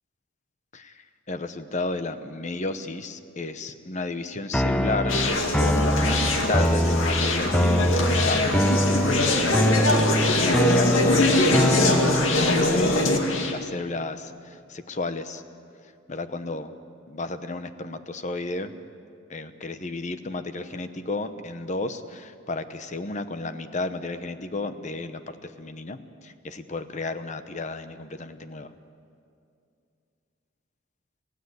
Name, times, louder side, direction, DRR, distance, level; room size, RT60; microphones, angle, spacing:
voice 1, 1.3-5.2 5.6-8.8 10.3-11.6 12.7-15.4 16.1-16.7 17.1-18.8 19.3-26.0 26.2-28.7, left 2 dB, 40° left, 10 dB, 1.0 m, -33 dB
sound 1, 4.5-12.5, equal, 5° left, 0.6 m, -24 dB
Conversation, 5.1-13.5, left 2 dB, 85° left, 2.2 m, -22 dB
27.0 x 16.0 x 8.2 m, 2.4 s
head